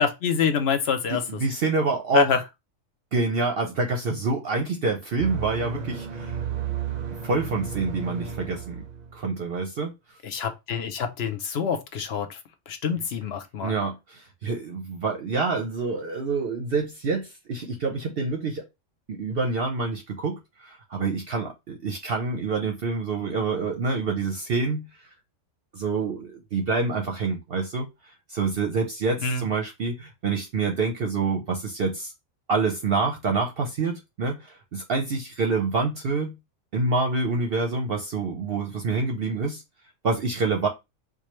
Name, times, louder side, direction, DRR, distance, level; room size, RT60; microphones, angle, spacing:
voice 1, 0.0-1.2 2.1-2.4 10.2-12.3 12.7-13.7 29.2-29.4, left 6 dB, 60° left, 0.8 m, -26 dB
voice 2, 1.1-2.4 3.1-6.4 7.2-8.8 9.1-9.9 13.6-18.6 19.1-24.8 25.7-27.9 28.3-32.1 32.5-36.4 36.7-39.6 40.0-40.7, right 4 dB, 55° right, 0.7 m, -27 dB
sound 1, 5.2-9.3, right 8 dB, 80° right, 0.3 m, -33 dB
4.7 x 2.2 x 3.0 m
omnidirectional pair, 1.4 m